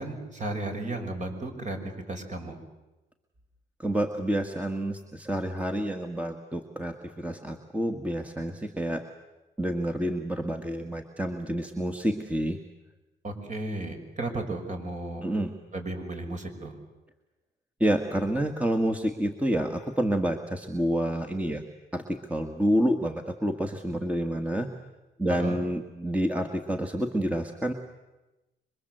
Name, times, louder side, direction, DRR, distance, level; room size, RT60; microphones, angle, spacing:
voice 1, 0.0-1.8 2.1-2.6 13.2-15.2 15.7-16.7 25.3-25.6, right 2 dB, 35° right, 4 dB, 5.9 m, -34 dB
voice 2, 3.8-9.0 9.6-12.6 15.2-15.5 17.8-21.6 21.9-24.7 25.2-27.7, right 1 dB, 5° right, 5 dB, 1.8 m, -28 dB
26.0 x 23.5 x 8.0 m, 1.0 s
cardioid pair, 90°, 20 cm